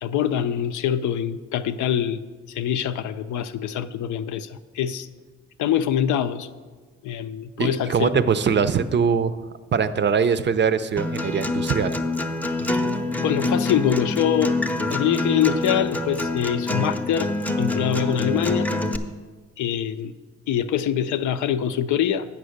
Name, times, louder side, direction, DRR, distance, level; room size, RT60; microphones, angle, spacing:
voice 1, 0.0-2.2 2.5-5.1 5.6-6.5 7.0-8.1 13.2-14.5 14.9-17.3 17.6-18.7 19.6-20.1 20.5-22.3, left 9 dB, 75° left, 11 dB, 0.6 m, -24 dB
voice 2, 7.6-9.3 9.7-11.9, right 6 dB, 35° right, 12 dB, 0.5 m, -22 dB
Acoustic guitar, 11.0-19.0, left 2 dB, 5° left, 0.6 m, -25 dB
8.3 x 6.0 x 6.5 m, 1.4 s
cardioid pair, 90°, 30 cm